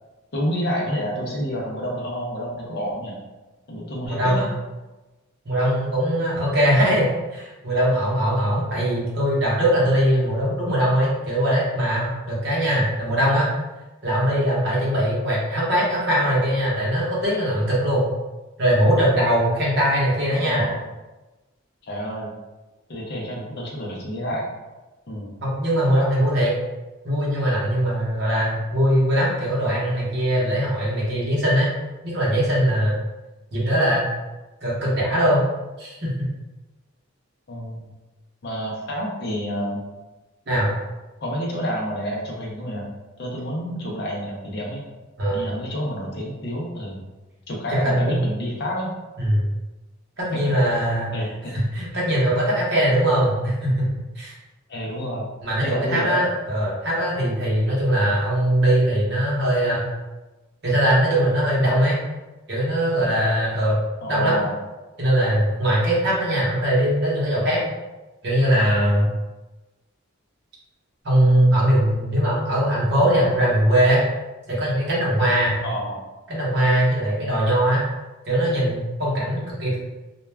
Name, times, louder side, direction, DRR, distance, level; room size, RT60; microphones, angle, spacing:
voice 1, 0.3-3.2 3.7-4.5 6.8-6.9 20.2-20.8 21.8-22.3 22.9-24.4 25.1-25.4 37.5-37.9 38.4-39.8 41.2-42.9 43.2-44.8 45.3-47.0 47.5-48.9 50.3-50.5 51.1-51.5 54.7-55.3 55.6-56.2 64.0-64.6 75.6-76.0, equal, 50° left, -2 dB, 0.6 m, -29 dB
voice 2, 4.0-4.5 5.4-13.5 14.0-18.1 18.6-20.7 25.4-26.5 27.0-31.7 32.0-33.0 33.5-34.1 34.6-35.5 35.8-36.3 40.5-40.7 45.2-45.5 47.8-48.2 49.2-49.5 50.2-51.1 51.5-54.3 55.4-59.9 60.6-62.0 62.5-63.8 64.1-64.4 65.0-67.6 68.2-69.1 71.0-74.0 74.5-75.6 76.3-77.8 78.2-79.8, equal, 50° right, -6 dB, 0.9 m, -21 dB
2.3 x 2.2 x 3.2 m, 1.1 s
head